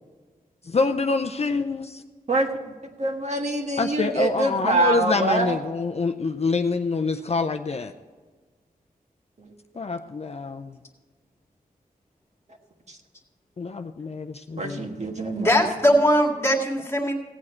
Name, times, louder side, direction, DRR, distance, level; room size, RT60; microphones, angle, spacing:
voice 1, 0.6-2.0 3.8-7.9 9.7-10.8 13.6-14.9, left 4 dB, 45° left, 5 dB, 0.5 m, -26 dB
voice 2, 2.3-2.7 3.0-5.6 9.4-9.5 14.6-15.6, right 2 dB, 50° right, 2 dB, 1.5 m, -25 dB
voice 3, 15.4-17.1, equal, 15° left, 1 dB, 2.0 m, -20 dB
16.5 x 8.7 x 4.4 m, 1.4 s
wide cardioid pair, 110°, 15 cm